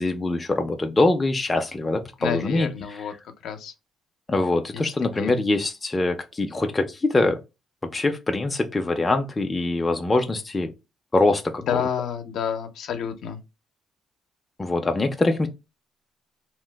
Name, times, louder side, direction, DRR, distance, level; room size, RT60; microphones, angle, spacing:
voice 1, 0.0-3.0 4.3-7.4 7.8-10.7 11.1-11.8 14.6-15.5, left 2 dB, 20° left, 0.5 m, -23 dB
voice 2, 2.2-3.1 3.4-3.7 4.7-5.4 11.7-13.4, left 8 dB, 75° left, 0.6 m, -29 dB
2.9 x 2.0 x 3.3 m
cardioid pair, 115°, 0 cm